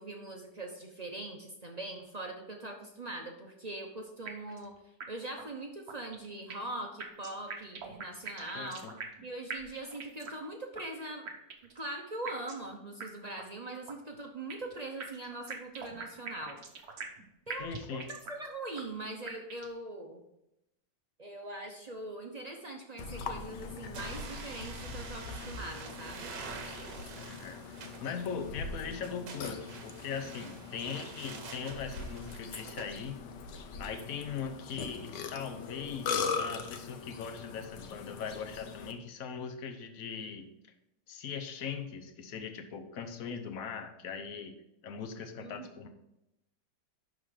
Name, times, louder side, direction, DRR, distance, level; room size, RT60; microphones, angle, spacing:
voice 1, 0.0-4.7 5.1-8.8 9.2-11.3 11.7-16.6 17.5-20.2 21.2-26.3 45.4-45.7, right 2 dB, 40° right, 1 dB, 0.5 m, -42 dB
sound 1, 4.3-4.7 5.0-5.1 5.4-5.5 5.9-6.7 7.0-9.2 9.5-10.5 10.8-10.9 11.3-11.8 12.3-12.7 13.0-13.1 13.4-13.5 13.9-14.7 15.0-17.2 17.5-18.5 18.8-18.9 19.3-19.8, right 5 dB, 60° right, 1.5 m, -43 dB
voice 2, 8.5-8.9 17.6-18.1 27.2-27.6 28.0-33.2 33.8-40.5 41.1-44.5 44.8-45.9, left 6 dB, 55° left, 6 dB, 1.2 m, -40 dB
Burping eructation, 23.0-38.9, left 5 dB, 75° left, 1.4 m, -41 dB
sound 2, 23.9-32.9, right 5 dB, 75° right, 1.7 m, -47 dB
11.5 x 3.9 x 5.0 m, 0.87 s
omnidirectional pair, 1.9 m